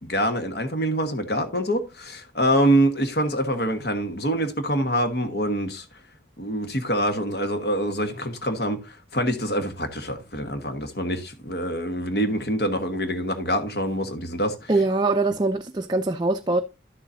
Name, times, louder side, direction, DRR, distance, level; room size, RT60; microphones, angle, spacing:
voice 1, 0.0-5.8 6.4-14.7, equal, 60° left, 1.3 m, -25 dB
voice 2, 14.7-16.6, right 2 dB, 25° right, 0.4 m, -23 dB
11.5 x 7.1 x 2.6 m
head